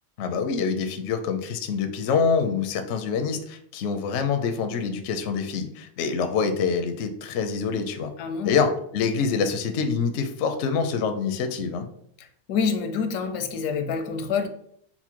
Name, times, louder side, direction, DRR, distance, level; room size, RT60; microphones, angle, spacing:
voice 1, 0.2-8.1 8.4-11.9, left 5 dB, 65° left, 7 dB, 0.7 m, -26 dB
voice 2, 8.2-8.6 12.5-14.5, left 5 dB, 85° left, 8 dB, 1.2 m, -27 dB
5.5 x 2.1 x 4.4 m, 0.68 s
omnidirectional pair, 1.6 m